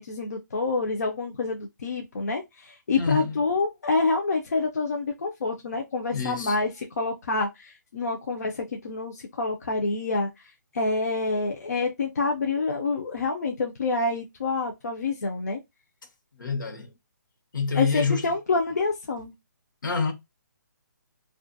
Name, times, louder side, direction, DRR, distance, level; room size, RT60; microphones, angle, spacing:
voice 1, 0.0-6.7 7.0-10.3 10.7-15.6 17.7-19.3, left 3 dB, 55° left, 0.5 m, -27 dB
voice 2, 3.0-3.4 6.1-6.6 16.4-16.9 17.5-18.3 19.8-20.1, left 5 dB, 80° left, 1.0 m, -27 dB
2.5 x 2.4 x 2.5 m
hypercardioid pair, 175°, 10 cm